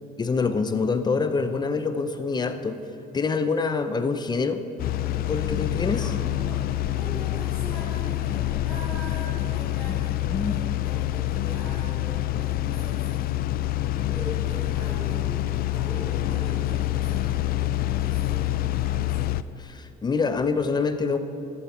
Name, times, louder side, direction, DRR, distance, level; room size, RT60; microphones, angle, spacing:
voice 1, 0.2-2.8 3.1-4.6 5.3-6.1 9.9-10.0 10.3-10.6 19.6-21.2, left 4 dB, 25° left, 9 dB, 0.7 m, -26 dB
sound 1, 4.8-19.4, left 14 dB, 65° left, 0.4 m, -26 dB
voice 2, 5.5-13.6 14.1-19.4, equal, ahead, -9 dB, 2.9 m, -41 dB
14.0 x 13.0 x 4.3 m, 2.8 s
cardioid pair, 110°, 17 cm